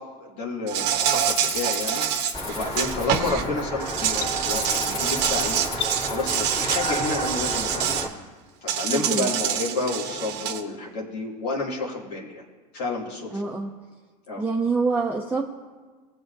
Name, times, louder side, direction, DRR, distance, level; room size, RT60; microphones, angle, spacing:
voice 1, 0.0-5.6 6.0-8.1 8.6-12.4 12.7-13.5 14.3-14.4, left 3 dB, 75° left, -3 dB, 2.6 m, -30 dB
Insect, 0.7-3.4 3.8-8.1 8.7-10.6, right 10 dB, 60° right, 1.0 m, -26 dB
Rattle (instrument), 1.0-3.6 4.4-6.7, left 3 dB, 50° left, 2.5 m, -36 dB
sound 1, 2.3-8.1, equal, 20° left, 2.4 m, -31 dB
voice 2, 8.9-9.3 13.3-13.7 14.4-15.4, right 4 dB, 10° right, 0 dB, 0.9 m, -25 dB
18.0 x 7.9 x 2.7 m, 1.4 s
hypercardioid pair, 90°, 20 cm